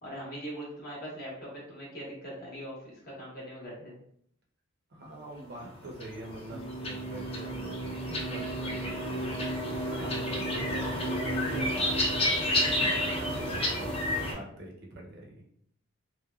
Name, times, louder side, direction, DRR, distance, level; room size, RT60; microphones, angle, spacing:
voice 1, 0.0-3.9 10.7-11.0, equal, 50° left, -5 dB, 0.9 m, -41 dB
voice 2, 4.9-9.4 9.7-11.0 11.4-13.9 14.3-15.3, right 1 dB, 55° right, -1 dB, 0.7 m, -45 dB
sound 1, 5.7-14.3, equal, 30° left, 0.6 m, -30 dB
3.0 x 2.1 x 2.3 m, 0.66 s
head